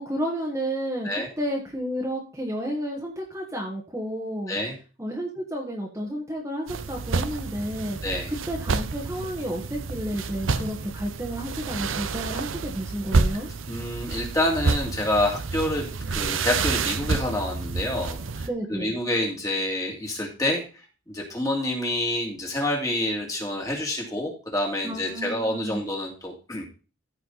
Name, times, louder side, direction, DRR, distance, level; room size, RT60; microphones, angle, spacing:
voice 1, 0.0-4.5 5.0-8.0 8.3-13.5 18.4-18.9 24.8-25.8, equal, 15° right, -1 dB, 1.5 m, -31 dB
sound 1, 6.7-18.5, right 4 dB, 85° right, 0.7 m, -29 dB
voice 2, 8.0-8.3 13.7-20.6 21.1-26.6, left 1 dB, 15° left, -1 dB, 2.4 m, -27 dB
14.5 x 5.0 x 4.1 m, 0.34 s
head